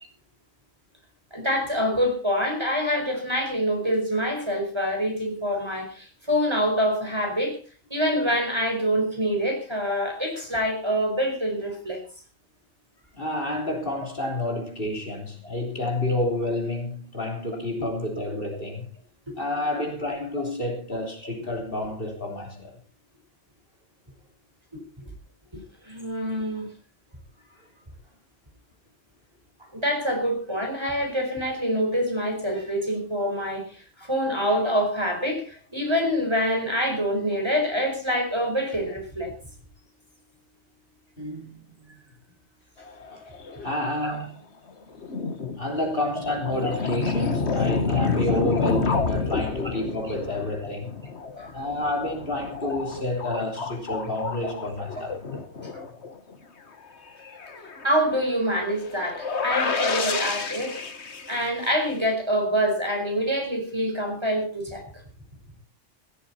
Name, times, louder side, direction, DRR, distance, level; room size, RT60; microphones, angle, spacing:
voice 1, 1.3-7.6 7.9-12.0 19.3-19.4 19.7-19.8 25.0-25.1 25.8-26.7 29.6-39.3 44.0-44.2 46.6-46.7 47.9-48.4 51.4-51.5 53.3-53.4 54.2-54.3 57.8-60.9 61.3-64.8, equal, 20° right, 2 dB, 4.6 m, -26 dB
voice 2, 13.1-18.9 19.4-22.7 41.2-41.9 43.1-43.2 43.6-44.3 45.6-51.0 51.5-55.1, left 1 dB, 45° left, 2 dB, 3.7 m, -29 dB
sound 1, 42.9-44.2 44.7-44.8 44.9-56.4 56.8-56.9 57.1-61.9, left 4 dB, 60° left, 1.8 m, -30 dB
16.5 x 13.0 x 4.3 m, 0.36 s
omnidirectional pair, 1.3 m